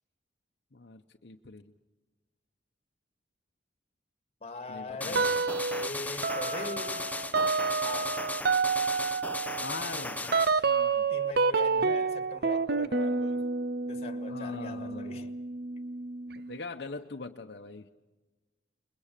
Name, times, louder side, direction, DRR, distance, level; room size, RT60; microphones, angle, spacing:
voice 1, 0.7-1.7 4.7-5.3 9.6-11.1 11.8-12.0 14.3-15.4 16.5-17.9, left 3 dB, 65° left, 0.9 m, -42 dB
voice 2, 4.4-5.5 5.8-7.1 7.8-8.2 11.1-13.4 13.9-15.3, left 2 dB, 35° left, 2.0 m, -41 dB
sound 1, 5.0-10.5, left 2 dB, 10° left, 0.7 m, -36 dB
sound 2, 5.1-5.9 6.2-16.6, right 4 dB, 60° right, 0.7 m, -29 dB
28.0 x 22.0 x 6.8 m
head